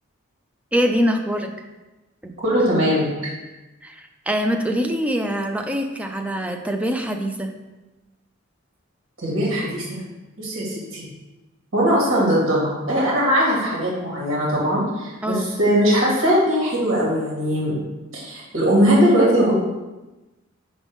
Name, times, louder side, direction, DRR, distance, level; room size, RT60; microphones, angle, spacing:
voice 1, 0.7-1.5 2.2-2.3 3.8-7.5 15.2-15.5, equal, 5° right, 4 dB, 0.5 m, -24 dB
voice 2, 2.4-3.1 9.2-10.0 10.4-11.0 11.7-17.7 18.1-19.5, equal, 70° right, -5 dB, 2.3 m, -20 dB
6.2 x 5.5 x 3.5 m, 1.1 s
head